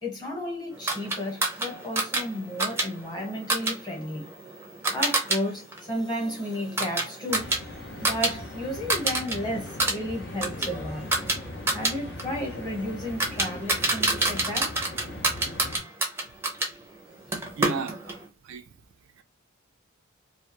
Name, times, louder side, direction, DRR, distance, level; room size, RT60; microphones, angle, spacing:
voice 1, 0.0-4.3 4.9-11.1 11.7-14.8, left 1 dB, 20° left, 1.0 m, -33 dB
sound 1, 0.9-5.4 5.7-8.3 8.6-9.4 9.7-16.7 17.3-18.2, right 2 dB, 10° right, 0.5 m, -28 dB
sound 2, 7.3-15.8, left 2 dB, 55° left, 0.6 m, -40 dB
voice 2, 17.6-18.7 19.2-19.3, right 5 dB, 65° right, 0.4 m, -35 dB
2.4 x 2.2 x 2.8 m
head